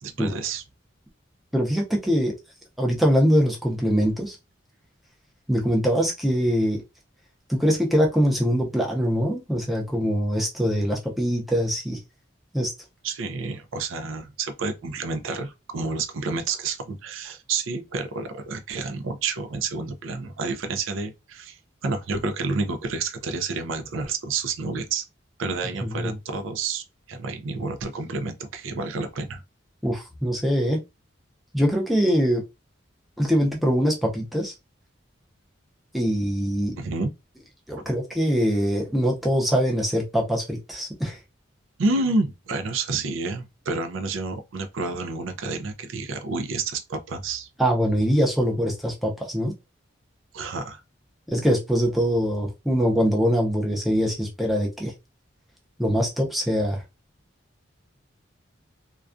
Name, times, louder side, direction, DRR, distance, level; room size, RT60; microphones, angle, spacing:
voice 1, 0.0-0.6 13.0-25.0 25.4-29.4 36.8-37.1 41.8-47.5 50.3-50.8, right 3 dB, 80° right, 0.4 m, -29 dB
voice 2, 1.5-2.3 2.8-4.4 5.5-6.8 7.5-12.0 12.5-12.7 25.8-26.2 29.8-30.8 31.5-32.4 33.2-34.5 35.9-36.7 37.7-41.2 47.6-49.5 51.3-54.9 55.8-56.8, equal, ahead, 0.5 m, -23 dB
2.3 x 2.2 x 2.5 m
head